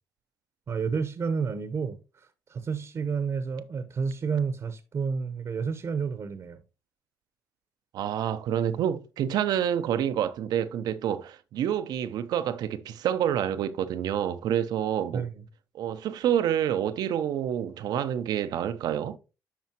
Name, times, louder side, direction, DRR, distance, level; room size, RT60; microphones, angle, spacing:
voice 1, 0.7-6.6 15.1-15.4, right 5 dB, 45° right, 0.8 m, -30 dB
voice 2, 7.9-15.3 15.7-19.2, right 10 dB, 75° right, 0.6 m, -28 dB
11.5 x 4.2 x 2.9 m
cardioid pair, 90°, 7 cm